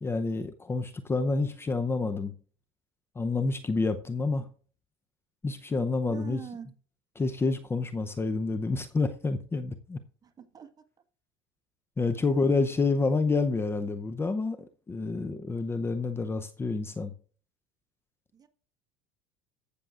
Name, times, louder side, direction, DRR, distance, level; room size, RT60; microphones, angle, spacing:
voice 1, 0.0-2.4 3.2-4.5 5.4-6.5 7.2-10.0 12.0-17.1, left 3 dB, 20° left, 0.7 m, -28 dB
voice 2, 6.1-6.7 10.2-10.7 18.3-18.5, right 8 dB, 30° right, 1.4 m, -43 dB
14.5 x 7.0 x 2.5 m
supercardioid pair, 100°, 13 cm